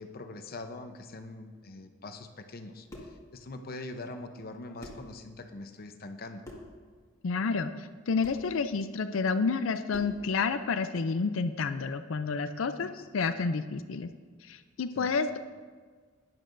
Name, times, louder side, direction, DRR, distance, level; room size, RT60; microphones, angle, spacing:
voice 1, 0.0-6.4 12.8-13.0 14.9-15.1, left 2 dB, 50° left, 6 dB, 0.8 m, -43 dB
sound 1, 2.9-3.2 4.4-4.5 4.8-5.1 6.4-6.8 8.2-8.5 9.9-10.3, left 1 dB, 15° left, 1.7 m, -46 dB
voice 2, 7.2-12.9 13.1-14.1 14.4-15.4, left 4 dB, 80° left, 10 dB, 0.5 m, -30 dB
17.0 x 10.5 x 2.6 m, 1.5 s
head